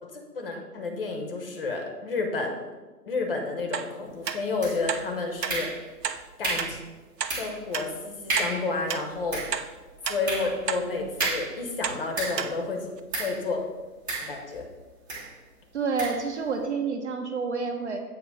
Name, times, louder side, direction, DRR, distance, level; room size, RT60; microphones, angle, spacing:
voice 1, 0.0-2.6 3.1-5.7 6.4-6.8 7.3-9.4 10.1-12.9 13.2-13.6 14.2-14.7, left 3 dB, 35° left, 3 dB, 0.8 m, -31 dB
sound 1, 3.7-3.9 4.3-4.4 4.9-5.0 5.4-5.6 6.0-6.2 6.6-6.7 7.2-7.3 7.7-7.9 8.4-8.5 8.9-9.0 9.5-9.7 10.0-10.2 10.7-10.8 11.2-11.4 11.8-12.0 12.4-12.5 13.0-13.1, right 7 dB, 85° right, 0.6 m, -30 dB
sound 2, 4.6-5.0 5.5-6.0 6.4-6.8 7.3-7.6 7.9-8.0 8.3-8.7 9.1-12.6 13.1-13.4 14.1-14.7 15.1-15.3 16.0-16.3, right 2 dB, 10° right, 0.9 m, -32 dB
voice 2, 15.7-18.0, right 4 dB, 45° right, 5 dB, 0.7 m, -29 dB
7.4 x 2.8 x 5.2 m, 1.3 s
figure-of-eight pair, 140°, 48 cm